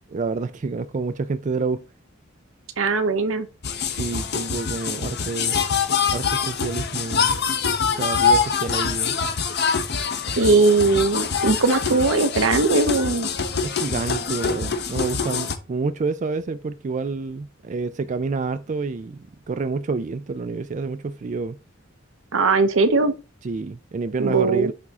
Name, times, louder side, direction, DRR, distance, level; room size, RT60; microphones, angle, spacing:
voice 1, 0.1-1.8 3.9-5.6 6.1-7.4 7.9-9.2 13.6-21.6 23.4-24.7, right 4 dB, 35° right, 0.4 m, -28 dB
voice 2, 2.8-3.5 10.4-13.3 22.3-23.1 24.2-24.7, right 3 dB, 80° right, 0.9 m, -19 dB
sound 1, 3.6-15.6, left 5 dB, 55° left, 1.0 m, -24 dB
9.3 x 3.6 x 4.1 m
head